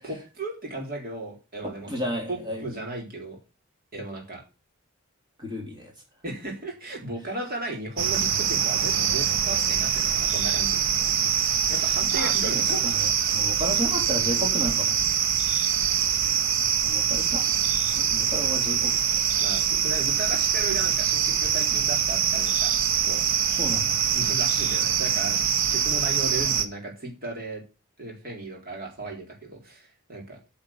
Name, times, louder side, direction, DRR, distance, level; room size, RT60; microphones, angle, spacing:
voice 1, 0.0-1.9 2.3-3.4 3.9-4.4 6.2-10.8 11.3-13.0 19.4-22.7 23.0-23.2 24.1-27.6 28.0-30.4, right 2 dB, 45° right, 0 dB, 3.9 m, -35 dB
voice 2, 1.6-2.6 5.4-5.9 10.2-10.3 12.1-12.3 12.7-14.9 16.8-17.6 17.9-18.9 23.6-24.0, left 1 dB, 20° right, 1 dB, 3.5 m, -32 dB
sound 1, 8.0-26.7, right 7 dB, 65° right, 1.0 m, -24 dB
9.2 x 5.7 x 7.3 m, 0.30 s
head